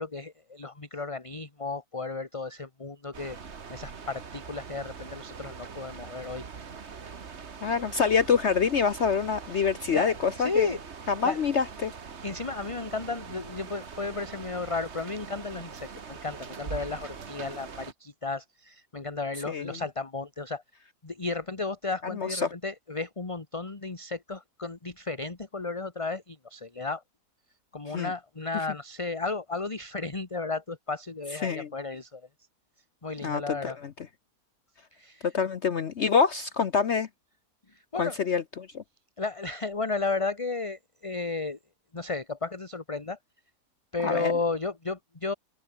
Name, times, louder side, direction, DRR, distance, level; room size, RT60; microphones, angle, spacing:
voice 1, 0.0-3.4 3.7-6.5 9.5-10.8 11.2-11.4 12.2-20.6 21.0-27.0 27.7-32.3 33.0-33.8 34.9-35.3 37.7-38.2 39.2-41.6 41.9-43.2 43.9-45.3, left 3 dB, 20° left, 1.4 m, -33 dB
sound 1, 3.1-17.9, right 5 dB, 45° right, 1.7 m, -43 dB
voice 2, 7.6-10.7 11.1-11.9 19.5-19.8 22.1-22.5 27.9-28.1 31.4-31.7 33.2-33.9 35.2-37.1 37.9-38.8 44.0-44.3, left 6 dB, 50° left, 1.0 m, -26 dB
omnidirectional pair, 1.8 m